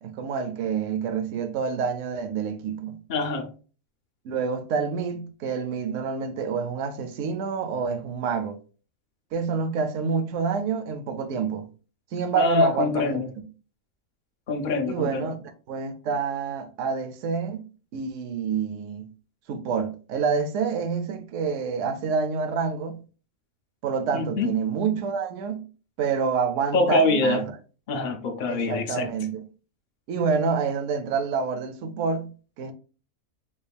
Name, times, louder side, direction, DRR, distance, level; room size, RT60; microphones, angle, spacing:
voice 1, 0.0-3.0 4.2-8.6 9.3-11.7 12.1-13.2 14.9-15.4 15.7-17.7 17.9-19.1 19.5-23.0 23.8-25.7 26.0-27.5 28.5-29.4 30.1-32.7, right 6 dB, 70° right, 0.8 m, -27 dB
voice 2, 3.1-3.5 12.3-13.3 14.5-15.3 24.1-24.5 26.7-27.4 27.9-29.1, left 2 dB, 70° left, 0.4 m, -24 dB
3.6 x 2.3 x 3.3 m
omnidirectional pair, 1.5 m